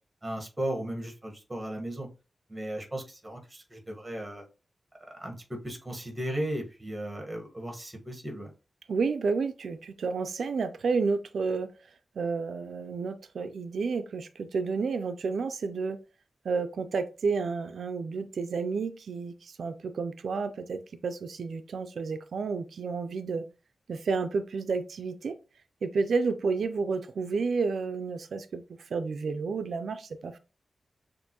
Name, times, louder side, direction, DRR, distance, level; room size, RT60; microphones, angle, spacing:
voice 1, 0.2-2.1 2.5-4.4 5.1-8.5, right 1 dB, 15° right, 1.2 m, -36 dB
voice 2, 8.9-11.7 12.2-16.0 16.4-23.5 23.9-25.3 25.8-30.4, right 4 dB, 90° right, 0.4 m, -31 dB
6.7 x 2.5 x 2.9 m
wide cardioid pair, 175°, 0 cm